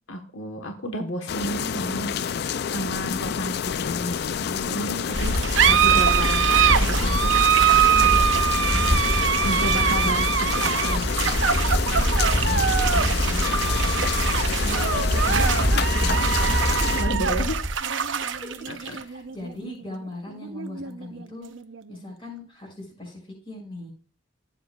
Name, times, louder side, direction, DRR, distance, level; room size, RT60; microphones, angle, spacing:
voice 1, 0.0-2.2 2.6-7.4 7.7-8.3 9.4-11.4 17.0-17.7 18.7-19.0, equal, 80° left, 4 dB, 1.2 m, -32 dB
sound 1, 1.3-17.0, left 7 dB, 55° left, 0.4 m, -29 dB
sound 2, 5.1-17.7, equal, 25° right, 4.5 m, -25 dB
sound 3, 5.1-22.1, right 8 dB, 70° right, 0.7 m, -24 dB
voice 2, 8.5-8.9 12.4-13.7 14.6-17.0 18.1-21.5 21.9-23.2 23.5-23.9, left 1 dB, 25° left, -2 dB, 5.9 m, -38 dB
15.5 x 8.3 x 2.4 m, 0.41 s
head